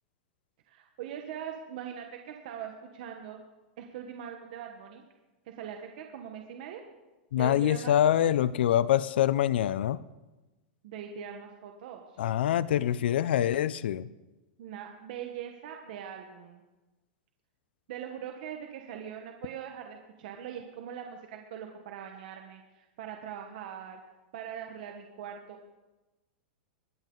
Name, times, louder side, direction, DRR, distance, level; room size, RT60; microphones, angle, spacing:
voice 1, 0.7-3.4 3.8-5.0 5.5-6.8 7.3-8.3 10.8-12.2 14.6-16.6 17.9-24.0 24.3-25.8, right 9 dB, 55° right, 3 dB, 1.3 m, -42 dB
voice 2, 7.3-10.0 12.2-14.1, left 11 dB, 80° left, 17 dB, 0.5 m, -25 dB
21.5 x 9.1 x 3.9 m, 1.1 s
supercardioid pair, 165°, 6 cm